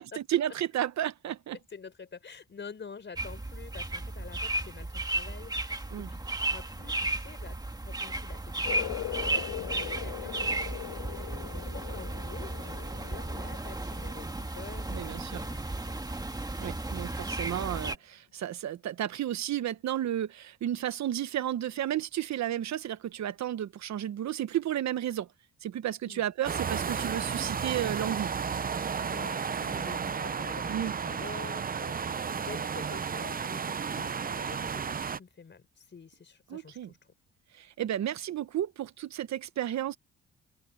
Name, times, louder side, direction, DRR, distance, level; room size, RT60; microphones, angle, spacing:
voice 1, 0.3-1.6 5.9-6.1 14.9-15.4 16.6-25.3 25.6-28.3 30.7-30.9 36.5-36.9 37.6-40.0, right 11 dB, 65° right, 1.2 m, -32 dB
voice 2, 1.7-7.6 7.8-14.3 14.5-16.0 26.0-26.2 28.9-37.0, left 5 dB, 40° left, 4.7 m, -48 dB
sound 1, 3.2-18.0, right 2 dB, 15° right, 1.8 m, -34 dB
sound 2, 8.6-15.8, left 14 dB, 80° left, 4.1 m, -41 dB
sound 3, 26.4-35.2, right 6 dB, 30° right, 0.7 m, -33 dB
open air
cardioid pair, 90°, 30 cm